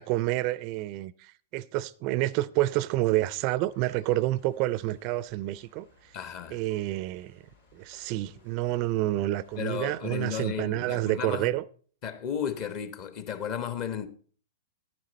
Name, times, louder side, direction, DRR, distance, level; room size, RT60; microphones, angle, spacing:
voice 1, 0.0-5.9 6.5-7.4 7.7-11.6, right 16 dB, 40° right, 0.4 m, -28 dB
sound 1, 3.6-10.0, left 3 dB, 75° left, 3.8 m, -60 dB
voice 2, 6.1-6.6 9.6-11.5 12.0-14.1, left 8 dB, 40° left, 1.2 m, -34 dB
10.0 x 9.6 x 4.1 m
figure-of-eight pair, 105°, 0 cm